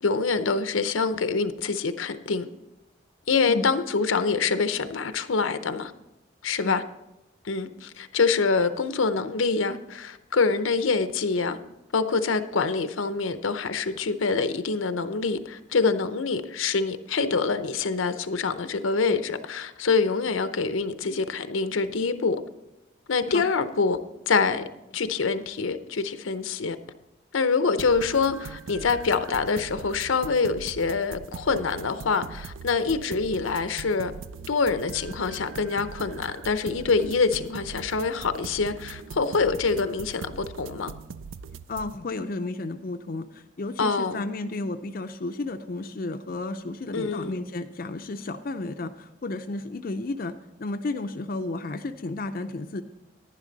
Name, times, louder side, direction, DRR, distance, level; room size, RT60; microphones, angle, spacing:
voice 1, 0.0-2.5 3.3-5.9 6.4-6.8 7.4-11.6 11.9-22.4 23.1-24.0 24.3-24.6 24.9-26.8 27.3-34.1 34.5-40.9 43.8-44.2 46.9-47.4, left 4 dB, 85° left, 0.7 m, -25 dB
sound 1, 27.8-41.9, right 5 dB, 80° right, 0.4 m, -41 dB
voice 2, 41.7-52.8, left 2 dB, 45° left, 0.5 m, -33 dB
11.0 x 10.5 x 3.9 m
head